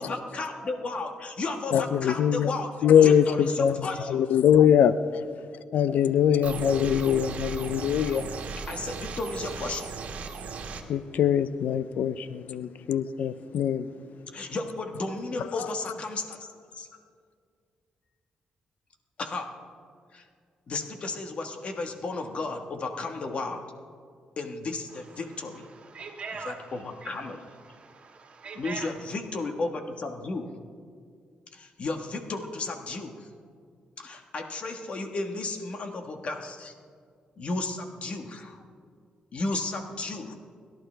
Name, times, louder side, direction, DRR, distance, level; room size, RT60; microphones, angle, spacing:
voice 1, 0.0-4.2 5.9-6.0 8.7-9.9 13.2-13.3 14.3-16.9 19.2-19.7 20.1-20.3 20.7-23.6 24.4-25.7 26.4-27.4 28.5-30.5 31.5-33.3 34.0-36.7 37.4-38.6 39.3-40.3, left 3 dB, 45° left, 1.5 m, -34 dB
voice 2, 1.7-2.5 2.8-3.7 4.1-5.2 5.7-8.3 10.9-13.9, left 9 dB, 75° left, 0.5 m, -22 dB
sound 1, 6.4-10.8, right 5 dB, 65° right, 1.6 m, -36 dB
voice 3, 25.7-26.7 27.0-27.1 27.6-28.9, right 4 dB, 50° right, 1.9 m, -41 dB
29.0 x 12.0 x 3.4 m
cardioid pair, 115°, 3 cm